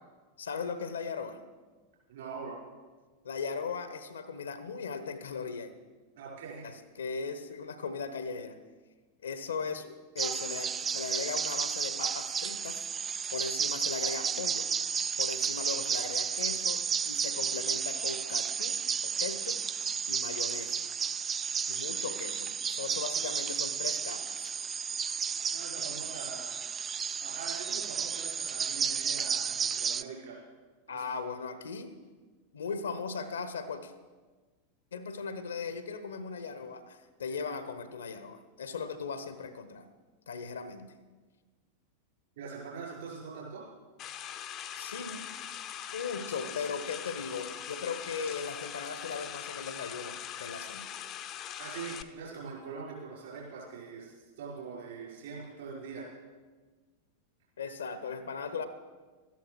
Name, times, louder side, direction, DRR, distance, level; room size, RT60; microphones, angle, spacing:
voice 1, 0.4-1.4 3.2-5.7 6.6-8.6 9.2-12.9 13.3-14.7 15.2-19.6 20.1-20.8 21.7-24.5 30.9-31.9 32.5-33.9 34.9-39.8 40.3-40.9 44.8-45.2 45.9-50.9 57.6-58.7, left 5 dB, 70° left, 12 dB, 1.0 m, -38 dB
voice 2, 2.1-2.6 6.2-6.7 15.7-15.8 22.0-22.1 25.5-26.6 27.2-30.4 30.9-31.0 42.4-43.6 51.6-56.1, right 5 dB, 60° right, -3 dB, 5.3 m, -43 dB
sound 1, 10.2-30.0, right 7 dB, 20° right, 0.3 m, -32 dB
sound 2, 44.0-52.0, left 10 dB, 35° left, 0.7 m, -41 dB
13.0 x 10.5 x 6.2 m, 1.4 s
figure-of-eight pair, 90°, 0 cm